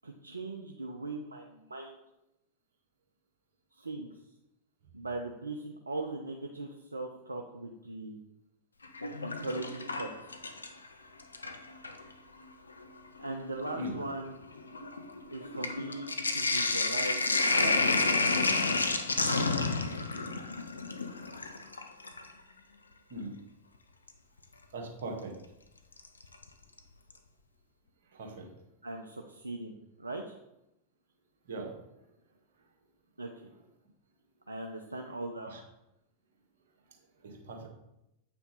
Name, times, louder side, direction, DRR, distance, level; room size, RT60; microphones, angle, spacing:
voice 1, 0.0-2.0 3.7-4.2 4.9-8.2 9.2-10.4 13.2-14.4 15.3-16.1 16.3-17.2 17.6-17.8 28.8-30.4 33.2-33.5 34.5-35.6 37.6-37.7, right 2 dB, 80° right, 2 dB, 0.6 m, -39 dB
Sink (filling or washing), 8.8-10.9 11.2-12.0 12.8-12.9 13.2-22.3 24.1-24.2 26.0-26.4 26.8-26.9 27.1-27.2, left 3 dB, 80° left, 0.6 m, -30 dB
voice 2, 24.7-25.3 28.1-28.5 31.4-31.7 35.5-35.6 37.2-37.7, right 1 dB, 60° right, 1 dB, 1.7 m, -40 dB
8.2 x 5.9 x 3.9 m, 0.85 s
figure-of-eight pair, 90°, 0 cm